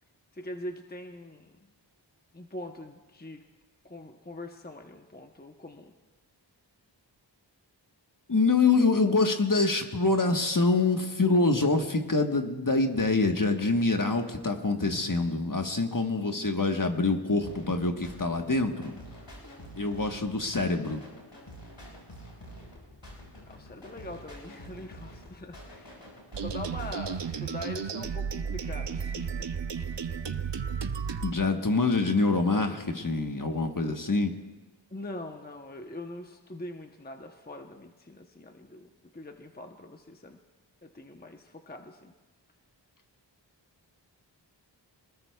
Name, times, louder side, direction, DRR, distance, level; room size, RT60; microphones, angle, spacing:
voice 1, 0.3-1.6 2.3-3.4 3.8-5.9 23.5-26.0 26.4-29.5 29.8-30.0 34.9-40.4 40.8-42.1, left 1 dB, 20° left, 4 dB, 0.9 m, -42 dB
voice 2, 8.3-18.9 19.8-21.0 31.2-34.3, left 3 dB, 45° left, 4 dB, 1.3 m, -25 dB
sound 1, 17.4-27.4, equal, 90° left, 5.0 m, -48 dB
sound 2, 26.3-31.3, right 6 dB, 70° right, 0.7 m, -33 dB
26.0 x 19.5 x 2.3 m, 1.2 s
wide cardioid pair, 50°, 45 cm